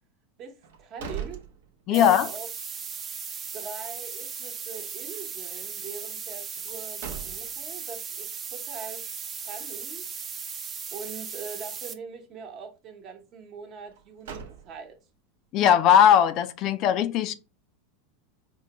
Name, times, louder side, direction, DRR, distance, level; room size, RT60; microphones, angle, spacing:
voice 1, 0.4-1.4 1.9-2.5 3.5-10.1 10.9-15.0, right 5 dB, 45° right, 0.9 m, -42 dB
sound 1, 0.6-2.2 2.6-2.7 6.5-7.8 13.8-15.1, right 7 dB, 80° right, 0.7 m, -41 dB
voice 2, 1.9-2.3 15.5-17.3, left 9 dB, 50° left, 0.3 m, -19 dB
sound 2, 1.9-11.9, right 6 dB, 30° right, 0.5 m, -37 dB
4.4 x 2.2 x 2.8 m
hypercardioid pair, 110°, 0 cm